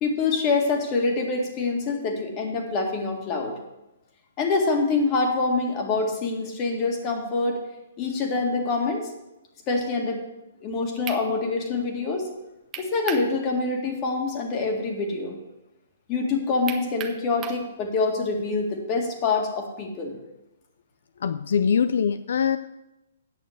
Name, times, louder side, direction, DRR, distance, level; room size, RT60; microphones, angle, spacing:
voice 1, 0.0-3.6 4.4-7.6 8.0-9.1 9.7-10.2 10.6-12.3 12.8-15.3 16.1-20.1, left 3 dB, 30° left, 3 dB, 2.0 m, -25 dB
sound 1, 10.6-10.7 11.1-11.2 12.7-13.3 13.7-13.8 16.7-17.6, right 7 dB, 20° right, 0.9 m, -35 dB
voice 2, 21.2-22.6, left 7 dB, 75° left, 13 dB, 0.4 m, -23 dB
8.9 x 6.4 x 7.8 m, 0.96 s
hypercardioid pair, 145°, 0 cm